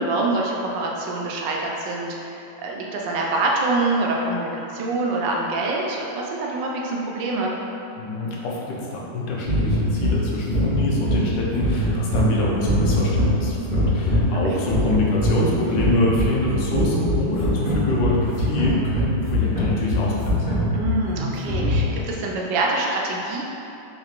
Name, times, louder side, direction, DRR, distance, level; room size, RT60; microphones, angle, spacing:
voice 1, 0.0-7.5 14.3-14.6 20.7-23.4, right 2 dB, 90° right, -2 dB, 1.3 m, -25 dB
voice 2, 8.0-20.6, left 2 dB, 85° left, -4 dB, 1.3 m, -25 dB
sound 1, 9.4-22.1, left 1 dB, 10° left, 1.2 m, -23 dB
4.2 x 2.9 x 2.4 m, 2.8 s
omnidirectional pair, 1.9 m